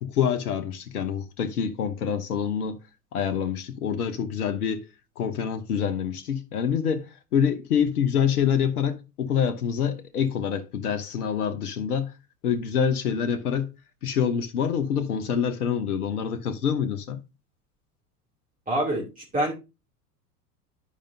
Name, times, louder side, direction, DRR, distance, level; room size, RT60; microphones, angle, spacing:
voice 1, 0.0-2.8 3.1-4.9 5.2-12.1 12.4-13.7 14.0-17.2, left 7 dB, 75° left, 1.1 m, -26 dB
voice 2, 18.7-19.5, right 1 dB, 20° right, 3.0 m, -26 dB
11.5 x 5.1 x 2.8 m
figure-of-eight pair, 80°, 45 cm